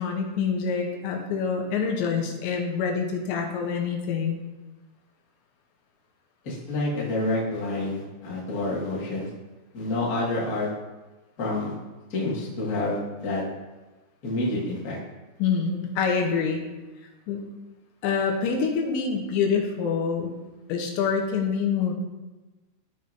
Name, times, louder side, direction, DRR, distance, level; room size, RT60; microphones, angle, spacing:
voice 1, 0.0-4.4 15.4-16.6 17.3-17.5 18.0-20.3 20.7-21.9, left 6 dB, 85° left, 1 dB, 3.3 m, -26 dB
voice 2, 6.4-9.3 9.7-10.7 11.4-11.7 12.1-13.4 14.2-15.0, left 2 dB, 60° left, -6 dB, 0.9 m, -28 dB
13.5 x 5.1 x 2.7 m, 1.2 s
omnidirectional pair, 5.1 m